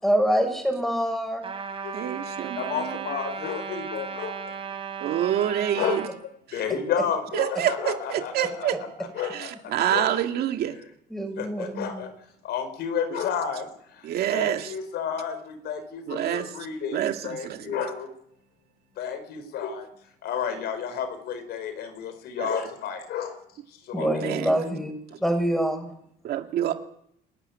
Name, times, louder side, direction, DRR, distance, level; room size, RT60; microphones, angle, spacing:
voice 1, 0.0-1.4 11.1-12.0 23.9-24.9 25.2-25.9, equal, ahead, 6 dB, 6.7 m, -25 dB
Trumpet, 1.4-6.1, right 6 dB, 35° right, 4.5 m, -35 dB
voice 2, 1.9-3.1 5.0-6.1 6.5-6.6 7.3-8.8 9.3-10.8 13.1-13.2 14.0-14.7 16.1-16.5 16.9-17.8 22.4-22.5 24.0-24.5 25.1-25.2 26.2-26.7, right 11 dB, 70° right, 5 dB, 2.2 m, -27 dB
voice 3, 2.6-4.3 5.8-6.0 6.5-8.9 9.2-9.3 9.9-10.1 11.4-12.1 12.5-13.6 14.3-15.3 15.6-18.1 19.0-19.8 20.2-23.3 23.9-24.1, left 7 dB, 75° left, 9 dB, 4.9 m, -31 dB
28.5 x 12.5 x 9.7 m, 0.73 s
cardioid pair, 110°, 17 cm